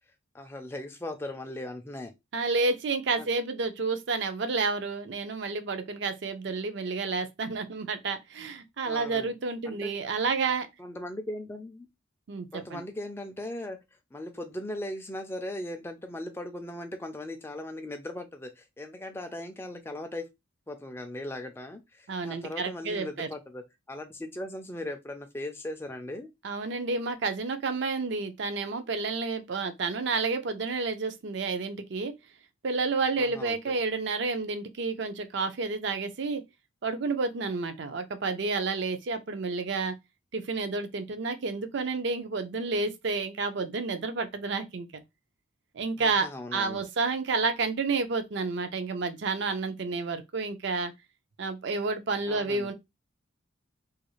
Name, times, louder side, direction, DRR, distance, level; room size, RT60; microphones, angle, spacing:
voice 1, 0.3-2.1 3.2-3.3 8.8-9.3 9.7-9.9 10.8-11.9 12.5-13.8 14.1-20.3 20.7-26.3 33.2-33.8 46.0-46.8 52.3-52.7, left 1 dB, 10° left, 0.3 m, -38 dB
voice 2, 2.3-10.7 12.3-12.8 22.1-23.3 26.4-32.1 32.6-36.4 36.8-40.0 40.3-45.0 45.7-50.9 51.4-52.7, right 4 dB, 55° right, 0.4 m, -30 dB
2.4 x 2.3 x 3.0 m
head